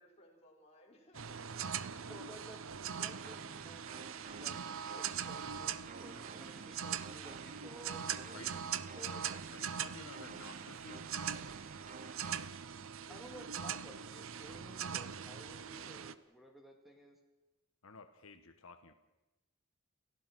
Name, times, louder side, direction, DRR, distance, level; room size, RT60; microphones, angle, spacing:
voice 1, 0.0-2.1 13.0-13.5, left 1 dB, 30° left, -1 dB, 5.5 m, -62 dB
sound 1, 1.1-16.1, right 8 dB, 70° right, 0.8 m, -42 dB
voice 2, 2.1-9.5 13.1-17.2, equal, ahead, 2 dB, 2.2 m, -55 dB
sound 2, 3.0-12.3, right 5 dB, 40° right, 0.7 m, -53 dB
voice 3, 9.5-11.1 17.8-18.9, left 4 dB, 75° left, 8 dB, 1.3 m, -53 dB
29.5 x 16.0 x 6.2 m, 1.0 s
head